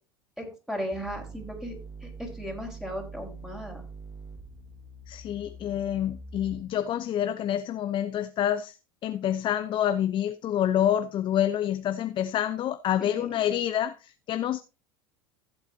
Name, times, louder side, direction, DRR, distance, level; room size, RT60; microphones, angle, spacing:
voice 1, 0.4-3.8 13.0-13.3, equal, 5° right, 4.5 m, -36 dB
sound 1, 0.9-6.9, right 3 dB, 35° right, 2.9 m, -44 dB
voice 2, 5.1-8.8 9.0-14.6, left 10 dB, 40° left, 0.7 m, -27 dB
15.0 x 8.0 x 2.8 m
hypercardioid pair, 80°, 13 cm